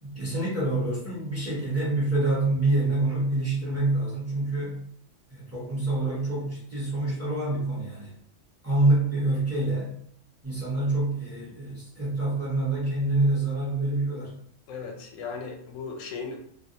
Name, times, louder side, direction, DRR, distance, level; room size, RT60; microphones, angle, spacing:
voice 1, 0.0-4.8 5.3-8.1 8.6-9.9 10.4-14.4, right 2 dB, 15° right, -7 dB, 0.6 m, -26 dB
voice 2, 14.7-16.4, left 5 dB, 85° left, 2 dB, 0.9 m, -36 dB
2.4 x 2.0 x 2.7 m, 0.64 s
omnidirectional pair, 1.3 m